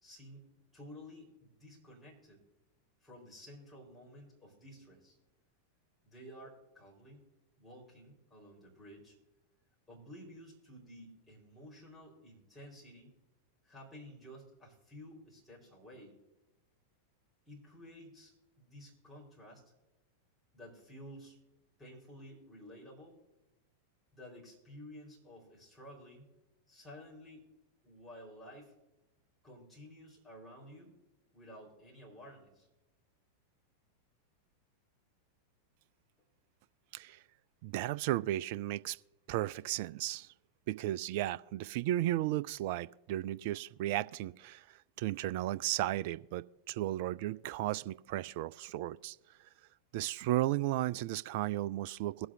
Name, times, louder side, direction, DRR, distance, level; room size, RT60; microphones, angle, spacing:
voice 1, 0.0-2.4 3.0-5.2 6.0-7.3 7.6-9.2 9.9-13.1 13.6-16.1 17.5-19.6 20.5-21.4 21.8-23.2 24.1-26.3 26.7-27.5 27.8-28.7 29.4-30.9 31.3-32.7, equal, 10° left, 4.4 m, -53 dB
voice 2, 37.6-39.0 39.3-40.3 40.7-49.2 49.9-52.3, right 14 dB, 50° right, 0.3 m, -34 dB
22.0 x 7.9 x 2.7 m
figure-of-eight pair, 90°, 0 cm